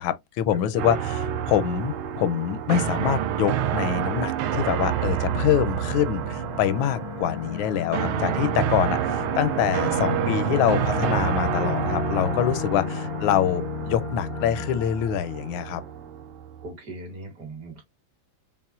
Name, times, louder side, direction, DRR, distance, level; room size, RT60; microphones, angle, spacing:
voice 1, 0.0-15.8, left 10 dB, 80° left, 1.3 m, -25 dB
voice 2, 0.5-1.0 12.8-13.3 16.6-17.8, right 3 dB, 50° right, 2.1 m, -40 dB
sound 1, 0.8-16.7, right 10 dB, 85° right, 1.4 m, -28 dB
sound 2, 6.2-15.9, left 10 dB, 65° left, 1.0 m, -34 dB
5.4 x 2.4 x 2.4 m
omnidirectional pair, 2.2 m